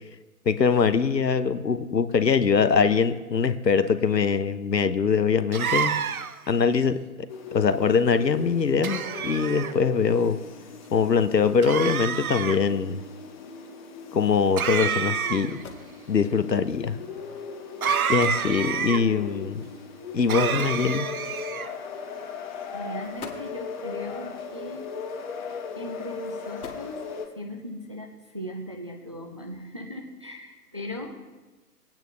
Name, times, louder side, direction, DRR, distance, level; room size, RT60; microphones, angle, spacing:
voice 1, 0.5-5.9 6.5-7.0 7.5-10.4 10.9-13.0 14.1-15.6 16.1-17.0 18.1-19.6 20.1-21.1, left 5 dB, 90° left, 12 dB, 0.9 m, -23 dB
sound 1, 5.5-6.5 8.8-9.7 11.6-12.6 14.6-15.6 17.8-19.0 20.3-21.7, right 7 dB, 60° right, 0.7 m, -28 dB
sound 2, 7.3-27.3, left 5 dB, 30° left, 1.1 m, -38 dB
foley Cardboard Box Drop, 15.6-16.0 17.0-17.2 17.9-18.0 18.2-18.6 20.6-21.4 22.4-22.5 23.0-23.7 24.9-25.4 26.3-27.3, left 5 dB, 60° left, 1.9 m, -43 dB
voice 2, 22.7-24.9 25.7-27.0 27.4-31.2, left 1 dB, 20° right, 1 dB, 0.4 m, -38 dB
18.5 x 9.0 x 3.2 m, 1.2 s
figure-of-eight pair, 140°, 48 cm